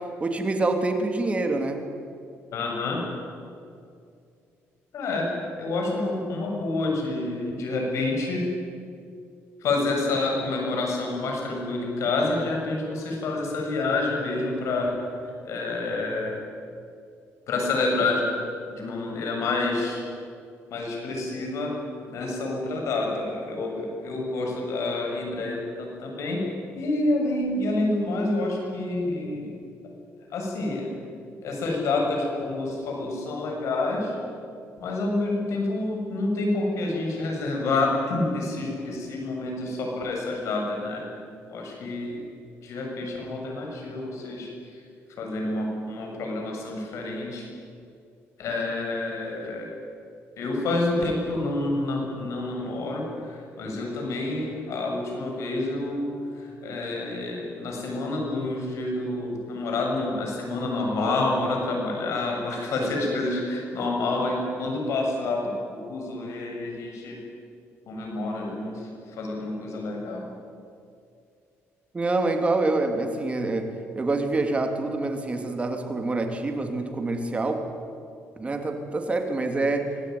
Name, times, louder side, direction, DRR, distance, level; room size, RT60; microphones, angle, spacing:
voice 1, 0.0-1.8 71.9-77.6 78.4-79.9, right 2 dB, 25° right, 5 dB, 2.9 m, -26 dB
voice 2, 2.5-3.0 4.9-5.3 5.6-8.4 9.6-14.9 15.4-16.4 17.5-18.4 18.7-20.0 20.7-21.7 22.1-26.4 26.7-29.5 30.3-30.9 31.4-34.1 34.8-41.0 41.5-42.2 42.6-44.8 45.2-47.5 48.4-49.7 50.4-65.4 65.7-67.2 67.9-70.2, left 2 dB, 65° left, 0 dB, 7.6 m, -28 dB
25.0 x 17.0 x 9.5 m, 2.5 s
cardioid pair, 110°, 5 cm